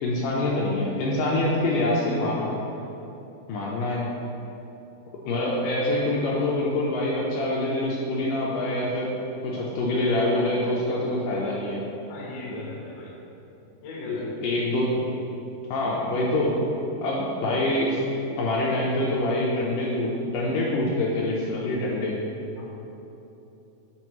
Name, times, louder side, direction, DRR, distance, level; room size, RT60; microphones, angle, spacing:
voice 1, 0.0-2.6 3.5-4.1 5.3-9.1 9.4-11.8 14.1-15.0 15.7-16.6 17.0-18.0 18.4-22.2, left 1 dB, 80° left, -3 dB, 2.1 m, -25 dB
voice 2, 12.1-13.2 13.8-14.4 22.6-22.7, left 2 dB, 65° left, -3 dB, 1.7 m, -38 dB
7.1 x 6.1 x 2.9 m, 3.0 s
omnidirectional pair, 4.1 m